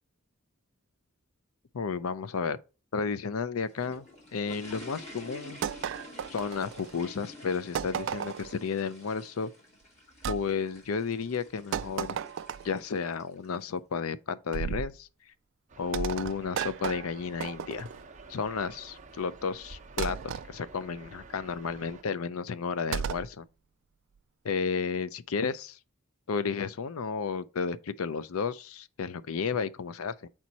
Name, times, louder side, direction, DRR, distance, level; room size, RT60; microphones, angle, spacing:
voice 1, 1.7-2.6 2.9-4.0 4.3-5.6 6.3-9.5 10.3-12.2 12.6-15.1 15.8-17.9 18.3-23.4 24.4-25.8 26.3-30.3, left 5 dB, 85° left, 0.5 m, -32 dB
sound 1, 3.5-13.7, left 1 dB, 30° left, 2.4 m, -50 dB
sound 2, 5.6-7.0 7.7-8.6 10.2-10.4 11.7-12.8 14.5-14.9 15.9-18.0 20.0-20.5 22.9-23.3, right 7 dB, 60° right, 0.3 m, -34 dB
Mall Next to the Coffee Shop, 15.7-22.0, right 4 dB, 35° right, 0.9 m, -50 dB
7.3 x 4.5 x 4.0 m
head